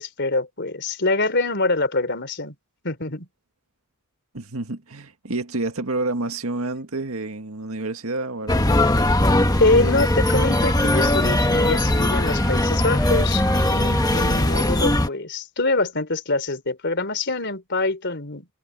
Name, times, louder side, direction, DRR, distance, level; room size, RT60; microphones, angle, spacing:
voice 1, 0.0-2.5 2.8-3.3 9.6-18.5, left 2 dB, 55° left, 3.9 m, -24 dB
voice 2, 4.3-8.8, right 2 dB, 80° right, 1.9 m, -29 dB
sound 1, 8.5-15.1, left 1 dB, 20° left, 1.4 m, -20 dB
sound 2, 9.3-15.1, equal, ahead, 4.0 m, -32 dB
head